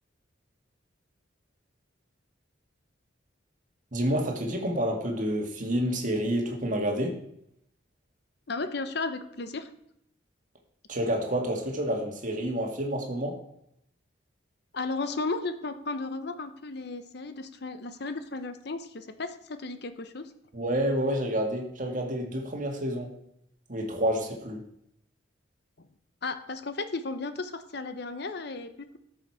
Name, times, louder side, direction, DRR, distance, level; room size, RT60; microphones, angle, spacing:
voice 1, 3.9-7.2 10.9-13.4 20.5-23.1 23.7-24.6, equal, 40° right, 1.9 m, -29 dB
voice 2, 8.5-9.7 14.7-20.3 26.2-29.0, left 3 dB, 55° left, 0.8 m, -34 dB
13.5 x 6.5 x 4.8 m
head